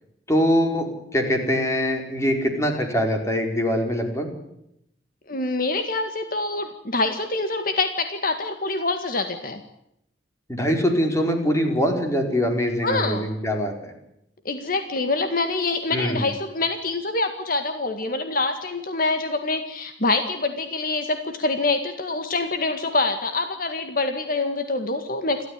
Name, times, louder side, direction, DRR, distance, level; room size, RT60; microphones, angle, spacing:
voice 1, 0.3-0.9 1.1-4.3 10.5-13.9 15.9-16.3, equal, 15° left, 3 dB, 4.7 m, -23 dB
voice 2, 5.3-9.6 12.8-13.3 14.5-25.5, left 3 dB, 55° left, 7 dB, 1.9 m, -25 dB
29.5 x 13.0 x 9.7 m, 0.79 s
head